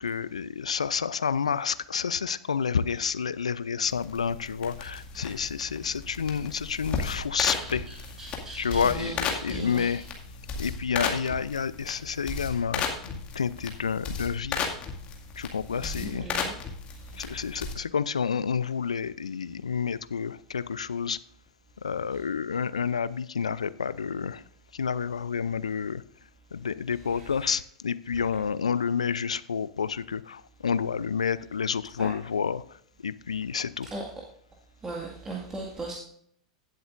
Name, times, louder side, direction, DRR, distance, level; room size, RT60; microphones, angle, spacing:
voice 1, 0.0-7.9 8.5-10.0 10.6-14.7 15.4-16.3 17.2-21.2 21.8-24.4 24.7-26.0 26.5-32.8 33.0-33.9, left 6 dB, 85° left, 17 dB, 0.5 m, -29 dB
sound 1, 3.9-17.7, left 5 dB, 35° left, 2.1 m, -35 dB
voice 2, 7.5-10.0 15.7-16.5 27.1-27.3 32.0-32.1 33.8-34.0 34.8-35.9, right 3 dB, 15° right, -1 dB, 1.9 m, -39 dB
16.0 x 7.9 x 2.6 m, 0.65 s
hypercardioid pair, 95°, 3 cm